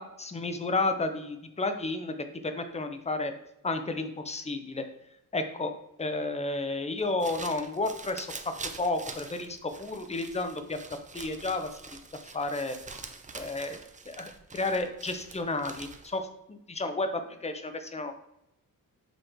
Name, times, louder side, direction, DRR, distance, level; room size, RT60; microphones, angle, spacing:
voice 1, 0.0-2.1 2.4-3.3 3.6-4.8 5.3-5.7 6.0-8.3 8.8-10.8 11.1-11.7 12.3-12.7 13.3-13.8 14.1-18.1, left 2 dB, 20° left, 7 dB, 0.7 m, -32 dB
sound 1, 7.0-16.2, right 4 dB, 20° right, 0.5 m, -45 dB
7.8 x 3.1 x 4.3 m, 0.82 s
cardioid pair, 110°, 36 cm